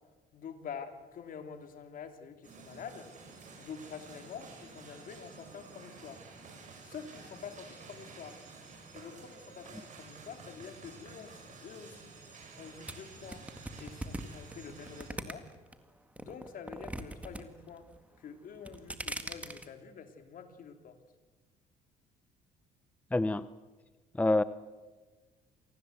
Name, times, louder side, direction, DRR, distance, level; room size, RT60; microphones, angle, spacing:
voice 1, 0.3-6.2 6.8-8.4 8.9-13.5 13.8-15.5 16.2-17.9 18.2-21.0, left 6 dB, 55° left, 7 dB, 2.8 m, -47 dB
sound 1, 2.4-15.1, right 4 dB, 50° right, 7.7 m, -51 dB
sound 2, 12.9-15.7 16.2-17.4 17.7-18.2 18.6-19.7, right 1 dB, 10° right, 1.9 m, -40 dB
sound 3, 12.9-15.9, right 4 dB, 90° right, 5.3 m, -63 dB
voice 2, 23.1-23.5 24.1-24.4, left 2 dB, 10° left, 15 dB, 0.7 m, -26 dB
27.5 x 19.5 x 8.0 m, 1.3 s
cardioid pair, 110°, 17 cm